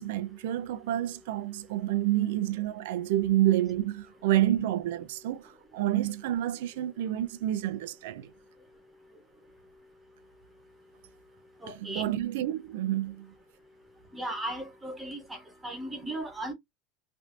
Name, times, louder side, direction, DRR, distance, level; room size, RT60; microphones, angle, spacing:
voice 1, 0.0-8.3 11.7-13.3, right 13 dB, 85° right, 0.4 m, -29 dB
voice 2, 11.6-12.1 14.1-16.5, right 1 dB, 5° right, 0.9 m, -36 dB
3.2 x 2.6 x 2.5 m
cardioid pair, 175°, 0 cm